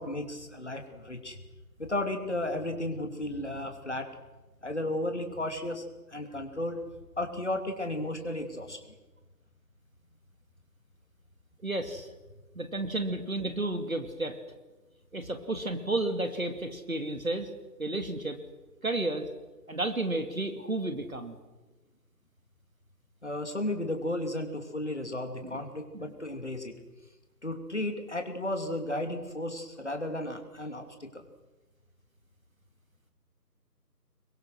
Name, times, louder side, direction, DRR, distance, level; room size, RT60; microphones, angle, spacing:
voice 1, 0.0-1.4 1.8-4.1 4.6-5.8 6.1-6.8 7.2-8.8 23.2-26.7 27.4-31.2, left 1 dB, 45° left, 5 dB, 2.9 m, -34 dB
voice 2, 11.6-12.1 12.6-14.4 15.1-17.5 17.8-18.4 18.8-19.3 19.7-21.4 25.4-25.6 25.9-26.1, right 2 dB, 55° right, 7 dB, 2.5 m, -32 dB
26.0 x 22.5 x 6.4 m, 1.2 s
figure-of-eight pair, 180°, 50 cm